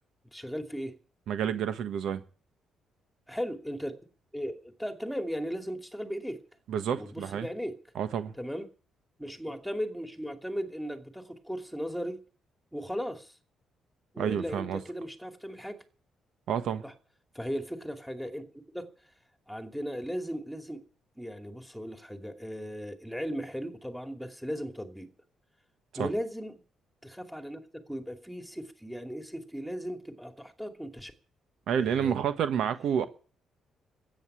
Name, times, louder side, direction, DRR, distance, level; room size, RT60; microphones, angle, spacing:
voice 1, 0.3-1.0 3.3-4.0 4.3-6.4 7.0-7.8 8.4-8.7 9.2-12.2 12.7-13.3 14.1-15.8 16.8-16.9 17.3-18.9 19.5-20.8 21.2-25.1 26.0-26.6 27.0-31.1 31.8-32.2, equal, ahead, 2.5 m, -37 dB
voice 2, 1.3-2.2 6.7-7.5 7.9-8.3 14.2-14.8 16.5-16.8 26.0-26.1 31.7-33.1, right 8 dB, 75° right, 1.3 m, -29 dB
13.5 x 9.1 x 9.9 m
cardioid pair, 90°, 0 cm